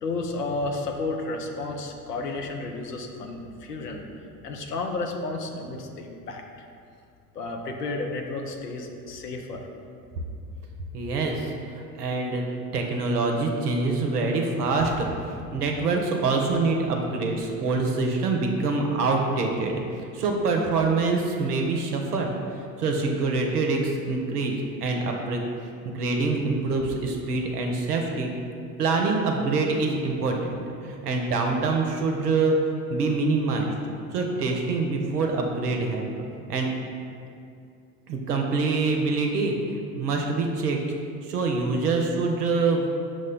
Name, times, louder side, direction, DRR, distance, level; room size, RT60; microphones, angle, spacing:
voice 1, 0.0-4.0 4.4-6.4 7.3-9.7, left 3 dB, 90° left, 2 dB, 0.5 m, -32 dB
voice 2, 10.9-11.5 12.0-12.4 12.7-15.1 15.5-19.8 20.1-24.5 24.8-25.5 25.8-28.3 28.8-32.6 32.9-33.8 34.1-36.1 36.5-36.7 38.1-40.8 41.2-42.9, right 3 dB, 80° right, 2 dB, 0.6 m, -25 dB
6.2 x 2.1 x 3.8 m, 2.4 s
figure-of-eight pair, 65°, 46 cm